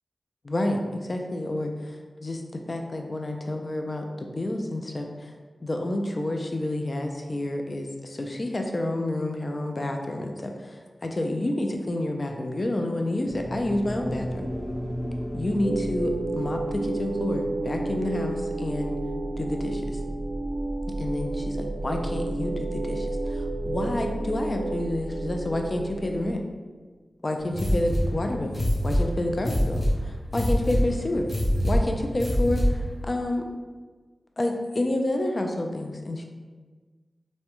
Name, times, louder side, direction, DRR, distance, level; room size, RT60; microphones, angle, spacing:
voice 1, 0.4-5.3 5.6-14.5 15.3-19.0 19.4-19.8 21.0-26.4 27.2-28.6 28.8-31.3 31.6-33.4 34.4-36.2, left 1 dB, 45° left, 3 dB, 0.4 m, -29 dB
sound 1, 13.2-21.5, equal, 5° right, 1.0 m, -37 dB
sound 2, 15.6-26.4, right 2 dB, 55° right, 0.5 m, -31 dB
sound 3, 27.5-32.9, equal, 25° left, 1.0 m, -25 dB
3.4 x 2.1 x 2.9 m, 1.4 s
wide cardioid pair, 65°, 0 cm